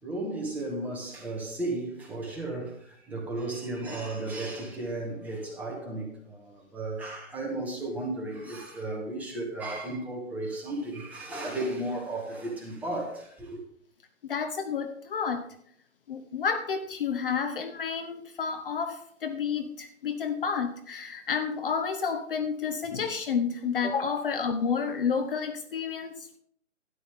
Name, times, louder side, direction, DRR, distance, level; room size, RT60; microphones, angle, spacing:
voice 1, 0.0-13.6, right 2 dB, 5° right, 1.5 m, -34 dB
voice 2, 14.2-15.4 16.1-26.3, left 6 dB, 45° left, 0.8 m, -30 dB
12.5 x 9.8 x 3.6 m
hypercardioid pair, 155°, 39 cm